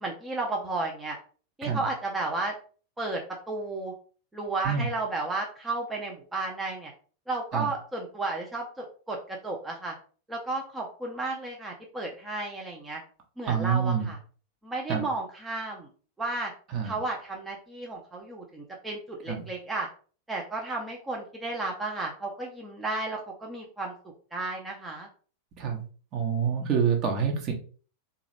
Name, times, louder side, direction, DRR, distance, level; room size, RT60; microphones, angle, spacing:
voice 1, 0.0-1.2 1.6-2.5 3.0-3.9 4.3-6.9 7.3-9.9 10.3-13.0 13.4-14.2 14.6-15.9 16.2-16.5 16.8-19.9 20.3-23.9 24.3-25.1, right 2 dB, 10° right, -1 dB, 0.7 m, -33 dB
voice 2, 13.5-14.1 14.9-15.0 16.7-16.9 19.3-19.4 25.6-25.8 26.1-27.5, right 7 dB, 35° right, 1 dB, 1.0 m, -26 dB
3.9 x 2.4 x 3.4 m, 0.40 s
figure-of-eight pair, 90°, 0 cm